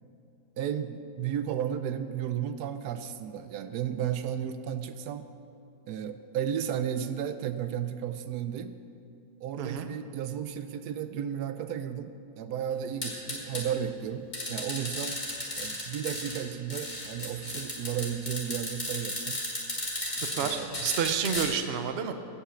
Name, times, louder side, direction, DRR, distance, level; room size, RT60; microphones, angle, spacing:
voice 1, 0.6-5.3 5.8-8.8 9.4-15.2 15.6-19.4 20.2-20.8, right 9 dB, 85° right, 11 dB, 1.2 m, -33 dB
voice 2, 9.6-9.9 20.2-22.1, right 8 dB, 50° right, 8 dB, 0.8 m, -30 dB
sound 1, 13.0-13.6 14.3-16.4 16.7-21.5, left 1 dB, 30° left, 2.3 m, -34 dB
16.5 x 5.8 x 7.0 m, 2.8 s
omnidirectional pair, 1.7 m